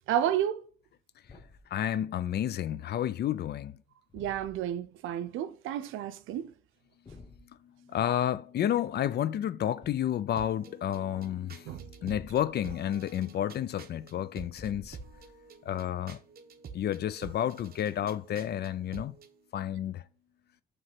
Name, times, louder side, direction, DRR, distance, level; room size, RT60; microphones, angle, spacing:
voice 1, 0.1-0.6 4.1-6.5 11.7-12.1, right 10 dB, 85° right, 0.6 m, -31 dB
Thump thud, 1.2-1.8 4.1-4.8 7.1-7.5 9.8-10.3 12.1-12.7 14.5-15.5, left 3 dB, 25° left, 0.9 m, -52 dB
voice 2, 1.7-3.7 7.9-15.0 15.6-16.2 16.7-19.2 19.5-20.0, left 10 dB, 55° left, 0.5 m, -31 dB
sound 1, 10.4-19.3, right 6 dB, 50° right, 0.9 m, -49 dB
7.8 x 3.2 x 5.7 m
cardioid pair, 90°, 20 cm